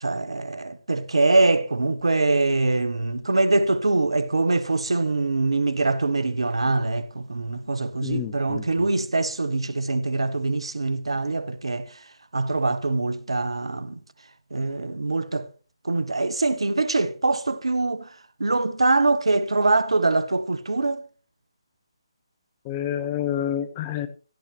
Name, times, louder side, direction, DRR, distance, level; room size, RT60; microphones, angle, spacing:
voice 1, 0.0-11.9 12.3-14.0 14.5-15.5 15.8-18.1 18.4-21.0, right 3 dB, 75° right, 1.2 m, -23 dB
voice 2, 8.0-8.9 22.6-24.1, left 10 dB, 25° left, 1.1 m, -29 dB
17.0 x 11.5 x 2.9 m
figure-of-eight pair, 150°, 3 cm